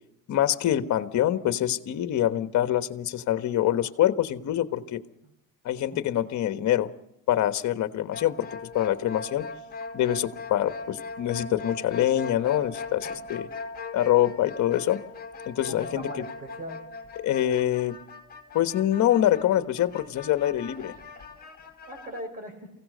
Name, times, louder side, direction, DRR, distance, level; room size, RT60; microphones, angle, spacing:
voice 1, 0.3-5.0 5.6-6.9 7.3-8.5 8.7-9.5 9.9-13.5 13.9-15.0 15.5-16.2 17.2-18.0 18.5-20.9, left 12 dB, 50° left, 10 dB, 1.4 m, -25 dB
sound 1, 8.1-22.2, left 4 dB, 25° left, 4.8 m, -40 dB
voice 2, 15.7-16.8 21.9-22.7, equal, 25° right, 4 dB, 6.1 m, -40 dB
23.5 x 16.5 x 6.7 m, 0.85 s
cardioid pair, 105°, 36 cm